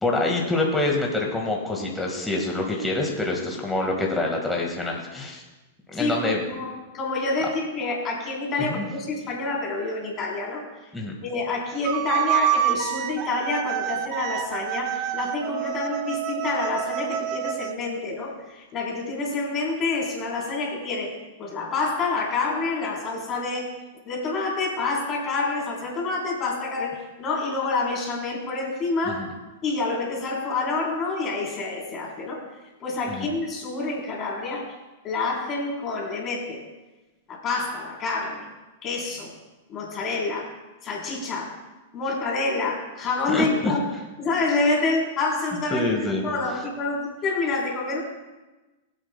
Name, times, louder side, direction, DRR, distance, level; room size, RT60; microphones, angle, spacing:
voice 1, 0.0-5.4 5.9-6.4 8.6-8.9 10.9-11.1 29.0-29.2 33.1-33.3 43.3-43.7 45.7-46.3, left 2 dB, 10° left, -1 dB, 1.7 m, -26 dB
voice 2, 5.9-10.7 11.2-21.1 21.4-23.7 24.0-29.2 29.6-32.4 32.8-34.8 35.0-36.6 37.3-38.5 38.8-39.3 39.7-40.6 40.8-41.6 41.9-43.8 44.2-48.0, left 3 dB, 30° left, -2 dB, 3.6 m, -28 dB
sound 1, 11.8-17.8, right 10 dB, 45° right, 0.6 m, -27 dB
20.5 x 8.3 x 2.2 m, 1.1 s
figure-of-eight pair, 100°, 0 cm